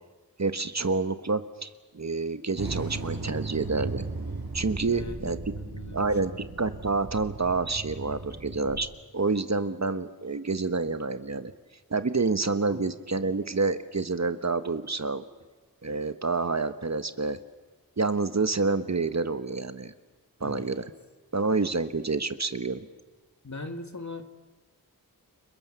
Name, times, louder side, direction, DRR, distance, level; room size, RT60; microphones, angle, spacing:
voice 1, 0.4-1.7 1.9-4.0 4.5-5.4 5.9-6.3 6.6-8.9 9.1-11.5 11.9-15.2 15.8-17.4 18.0-19.9 20.4-20.8 21.3-22.9, right 3 dB, 50° right, 11 dB, 1.2 m, -28 dB
sound 1, 2.6-8.8, right 3 dB, 80° right, 6.4 m, -36 dB
voice 2, 4.9-6.5 8.3-8.4 12.7-12.8 20.4-20.7 23.4-24.2, left 2 dB, 50° left, 7 dB, 2.2 m, -41 dB
30.0 x 21.5 x 7.0 m, 1.3 s
wide cardioid pair, 55°, 36 cm